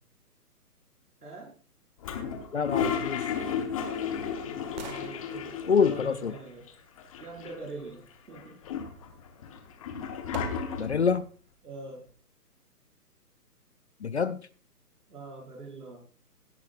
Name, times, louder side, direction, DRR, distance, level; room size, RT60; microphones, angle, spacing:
voice 1, 1.2-1.5 4.9-6.7 7.2-8.6 11.6-12.1 15.1-16.1, right 3 dB, 70° right, 5.8 m, -44 dB
Toilet flush, 2.0-6.4 6.7-6.8 7.0-7.8 8.3-11.1, left 7 dB, 20° left, 1.0 m, -33 dB
voice 2, 2.5-3.2 5.7-6.3 10.8-11.3 14.0-14.4, left 6 dB, 45° left, 0.4 m, -26 dB
sound 1, 10.3-11.0 11.5-11.6, right 6 dB, 30° right, 1.3 m, -49 dB
16.5 x 8.5 x 2.5 m
hypercardioid pair, 150°, 47 cm